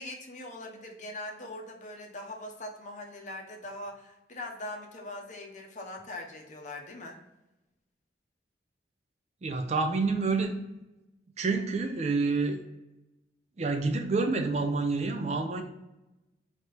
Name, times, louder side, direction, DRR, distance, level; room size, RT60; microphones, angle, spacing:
voice 1, 0.0-7.2, left 1 dB, 40° left, 2 dB, 0.7 m, -41 dB
voice 2, 9.4-10.6 11.4-12.6 13.6-15.6, right 3 dB, 35° right, 5 dB, 0.4 m, -28 dB
3.2 x 2.9 x 4.4 m, 0.97 s
head